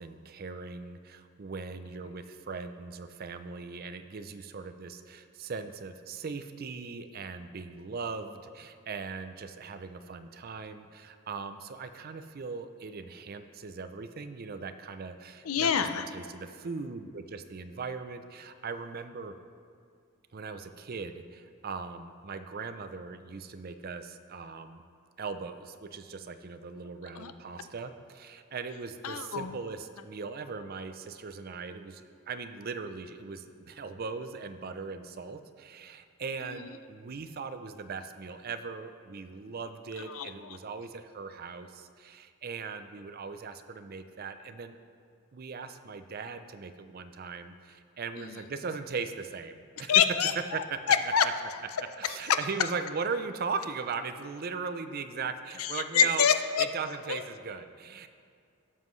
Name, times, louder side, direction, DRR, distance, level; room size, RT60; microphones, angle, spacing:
voice 1, 0.0-19.3 20.3-24.8 25.2-44.8 45.3-49.9 50.4-51.0 51.8-56.3 56.6-58.1, right 5 dB, 45° right, 10 dB, 0.5 m, -39 dB
voice 2, 15.5-16.0 27.2-27.3 29.0-29.6 40.1-40.3 48.2-48.3 49.9-51.2 55.6-56.7 57.1-57.2, left 7 dB, 75° left, 9 dB, 0.6 m, -26 dB
16.5 x 7.3 x 3.2 m, 2.3 s
head